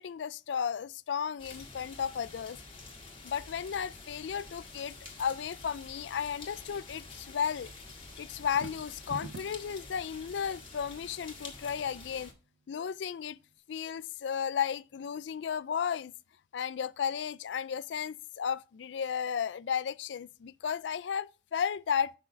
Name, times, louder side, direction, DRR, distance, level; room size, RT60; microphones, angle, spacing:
voice 1, 0.0-2.6 3.2-7.7 8.2-12.3 12.7-13.4 13.7-16.1 16.5-22.1, left 7 dB, 65° left, 0.4 m, -34 dB
sound 1, 1.4-12.3, left 3 dB, 30° left, 1.9 m, -48 dB
sound 2, 8.4-9.7, right 4 dB, 70° right, 0.5 m, -43 dB
6.6 x 6.0 x 5.6 m
head